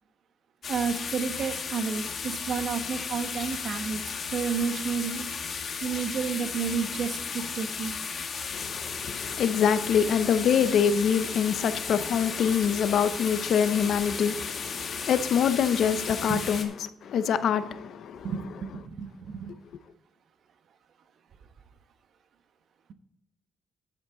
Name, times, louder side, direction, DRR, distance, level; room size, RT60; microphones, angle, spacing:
sound 1, 0.6-16.6, left 5 dB, 50° left, 1.8 m, -35 dB
voice 1, 0.7-4.0 4.3-5.3 5.8-8.0 16.3-16.4 18.2-19.5, right 6 dB, 65° right, 1.1 m, -31 dB
voice 2, 8.5-18.3, left 7 dB, 65° left, 0.8 m, -25 dB
11.0 x 8.3 x 3.9 m
cardioid pair, 90°, 0 cm